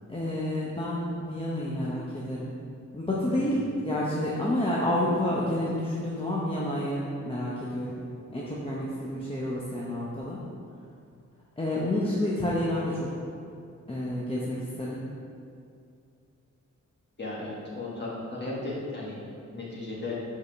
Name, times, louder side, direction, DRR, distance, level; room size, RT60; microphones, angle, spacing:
voice 1, 0.1-2.5 2.9-8.0 8.3-10.4 11.6-13.1 13.9-15.0, left 1 dB, 20° left, -6 dB, 0.7 m, -29 dB
voice 2, 17.2-19.2 19.5-20.2, left 2 dB, 35° left, -6 dB, 1.7 m, -35 dB
5.5 x 4.8 x 5.8 m, 2.5 s
wide cardioid pair, 175°, 30 cm